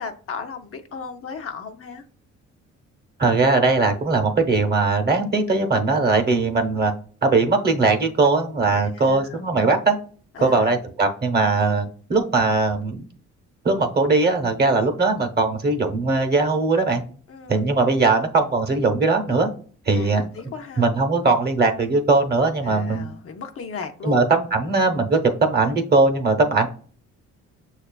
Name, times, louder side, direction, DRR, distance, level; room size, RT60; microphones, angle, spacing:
voice 1, 0.0-2.0 8.7-9.4 10.3-10.8 17.3-17.8 19.9-20.9 22.6-24.3, left 5 dB, 50° left, 6 dB, 0.6 m, -36 dB
voice 2, 3.2-6.9 7.2-10.0 10.4-13.0 13.6-17.0 17.5-19.5 19.9-20.2 20.8-23.1 24.0-26.7, right 3 dB, 35° right, 5 dB, 0.8 m, -20 dB
6.3 x 2.3 x 2.2 m, 0.43 s
cardioid pair, 90°, 30 cm